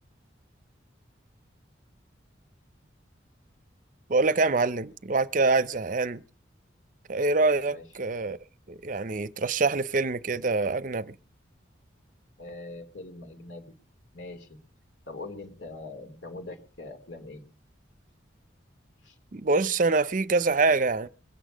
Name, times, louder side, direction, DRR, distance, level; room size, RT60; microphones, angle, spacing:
voice 1, 4.1-6.2 7.1-8.4 8.7-11.1 19.3-21.1, right 3 dB, 45° right, 0.6 m, -25 dB
voice 2, 12.4-13.7 14.1-14.6 15.1-17.4 19.0-19.1, left 2 dB, 75° left, 2.8 m, -42 dB
23.0 x 8.4 x 5.0 m
head